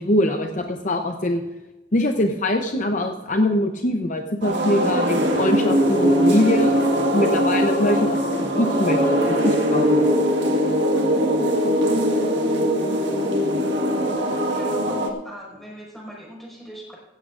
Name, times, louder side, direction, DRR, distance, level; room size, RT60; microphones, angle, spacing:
voice 1, 0.0-1.4 1.9-6.7 7.1-10.1, left 1 dB, 40° left, 4 dB, 0.7 m, -23 dB
sound 1, 4.4-15.1, equal, 65° right, 1.6 m, -21 dB
voice 2, 14.5-17.0, equal, ahead, -3 dB, 5.3 m, -41 dB
16.5 x 15.0 x 2.5 m, 1.1 s
head